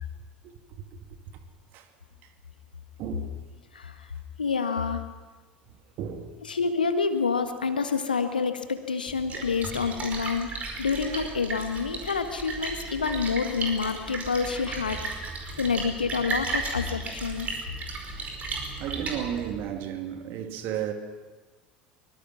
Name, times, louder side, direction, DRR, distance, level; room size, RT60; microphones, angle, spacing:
voice 1, 3.7-4.1 4.4-5.0 6.4-15.0 15.3-17.5, left 5 dB, 80° left, 1.5 m, -28 dB
voice 2, 5.7-6.3 10.9-11.3 18.8-20.9, right 9 dB, 45° right, 2.3 m, -34 dB
Splash splatter, 9.1-19.7, right 3 dB, 30° right, 5.0 m, -35 dB
23.5 x 22.5 x 6.0 m
figure-of-eight pair, 70°, 5 cm